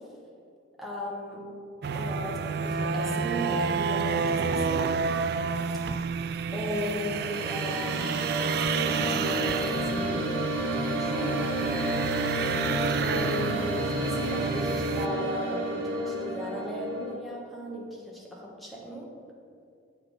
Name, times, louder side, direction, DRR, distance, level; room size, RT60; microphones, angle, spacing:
voice 1, 0.8-1.5 1.9-5.0 6.5-8.3 8.7-10.4 10.8-11.9 13.0-19.1, equal, ahead, -4 dB, 1.4 m, -36 dB
sound 1, 1.8-15.1, right 5 dB, 55° right, 0.3 m, -30 dB
sound 2, 6.9-17.1, right 1 dB, 85° right, 1.7 m, -31 dB
8.2 x 5.8 x 5.2 m, 2.4 s
head